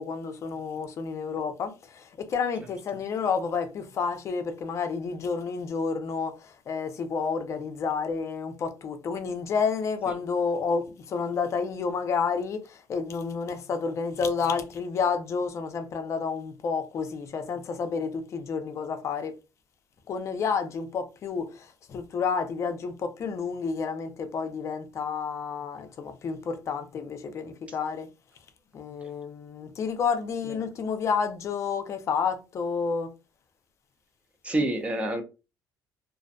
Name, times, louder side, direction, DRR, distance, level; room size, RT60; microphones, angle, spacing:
voice 1, 0.0-19.3 20.1-28.1 28.7-33.1, left 5 dB, 40° left, 0.4 m, -30 dB
voice 2, 34.4-35.2, right 1 dB, 15° right, 0.4 m, -28 dB
2.5 x 2.0 x 2.5 m
cardioid pair, 165°, 8 cm